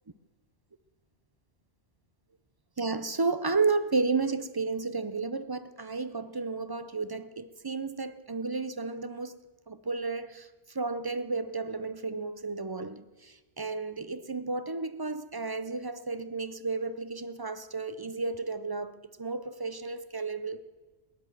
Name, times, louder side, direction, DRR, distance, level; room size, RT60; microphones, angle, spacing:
voice 1, 2.8-9.4 9.7-18.9 19.2-20.6, right 4 dB, 35° right, 0.4 m, -32 dB
17.5 x 10.5 x 7.6 m
omnidirectional pair, 1.1 m